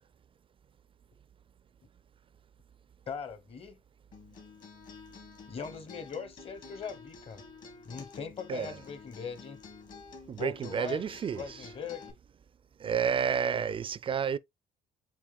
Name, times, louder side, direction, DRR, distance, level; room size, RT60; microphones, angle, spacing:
voice 1, 3.1-3.8 5.5-7.5 7.8-9.6 10.4-12.1, left 6 dB, 35° left, 0.9 m, -41 dB
Acoustic guitar, 4.1-12.1, left 5 dB, 50° left, 1.7 m, -50 dB
voice 2, 10.3-11.4 12.8-14.4, right 7 dB, 30° right, 0.3 m, -30 dB
7.2 x 3.0 x 2.3 m
cardioid pair, 110°, 17 cm